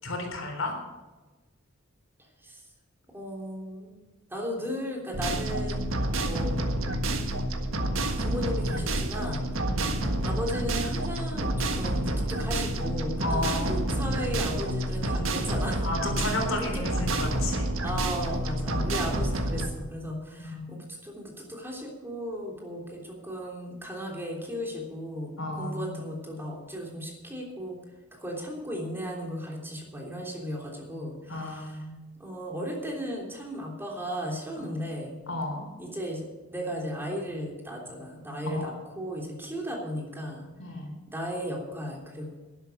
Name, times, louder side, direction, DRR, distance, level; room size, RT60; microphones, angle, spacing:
voice 1, 0.0-0.8 9.7-10.0 13.2-13.9 15.8-17.7 20.4-20.7 25.4-26.0 31.3-32.0 34.5-34.8 35.3-35.7 38.4-38.7 40.6-40.9, left 2 dB, 80° left, 3 dB, 3.8 m, -33 dB
voice 2, 2.2-2.6 3.1-3.9 4.3-5.8 6.2-6.6 8.2-9.5 10.2-15.9 16.2-17.1 17.8-27.8 28.1-31.9 32.2-35.1 35.8-36.3 36.5-40.5 41.1-42.4, equal, 10° right, -1 dB, 3.3 m, -35 dB
sound 1, 5.1-19.7, right 1 dB, 75° right, 1.5 m, -29 dB
12.0 x 11.0 x 6.6 m, 1.2 s
head